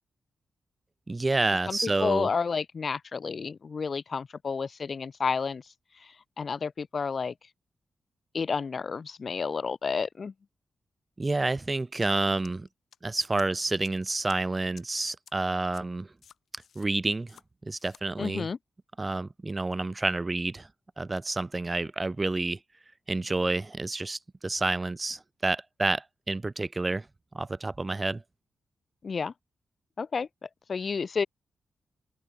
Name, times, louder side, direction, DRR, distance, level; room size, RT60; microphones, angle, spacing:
voice 1, 1.1-2.3 11.2-12.7 13.0-16.1 16.8-18.5 19.0-20.7 21.0-22.6 23.1-27.0 27.3-28.2, right 2 dB, 25° right, 0.7 m, -29 dB
voice 2, 1.7-5.6 6.0-7.3 8.3-10.3 18.2-18.6 29.0-29.3 30.0-31.3, left 5 dB, 50° left, 1.7 m, -31 dB
sound 1, 12.0-12.1 12.4-13.0 13.4-13.5 13.8-13.9 14.3-14.4 14.8-14.9 15.3-15.4 15.7-15.8 16.2-16.9 17.3-17.4 17.7-18.0, left 8 dB, 80° left, 5.0 m, -53 dB
cardioid pair, 85°, 0 cm